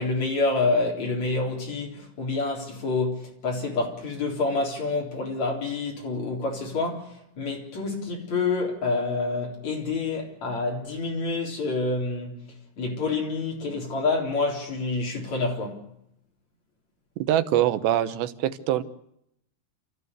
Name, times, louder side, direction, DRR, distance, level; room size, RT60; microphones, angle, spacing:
voice 1, 0.0-12.4 12.8-15.8, left 3 dB, 45° left, 4.8 m, -27 dB
voice 2, 17.3-18.8, right 12 dB, 90° right, 3.2 m, -23 dB
29.5 x 14.0 x 8.0 m
omnidirectional pair, 4.8 m